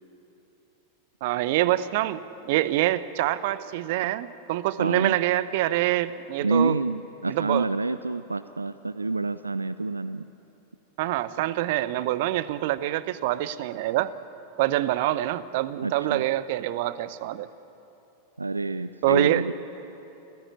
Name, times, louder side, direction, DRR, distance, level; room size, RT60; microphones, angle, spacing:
voice 1, 1.2-6.7 7.3-7.7 11.0-14.1 14.6-17.5 19.0-19.4, right 15 dB, 50° right, 16 dB, 0.8 m, -25 dB
voice 2, 4.8-5.2 6.4-10.3 15.8-16.2 18.4-19.5, right 3 dB, 80° right, 15 dB, 0.4 m, -28 dB
29.0 x 15.5 x 8.4 m, 3.0 s
figure-of-eight pair, 90°, 0 cm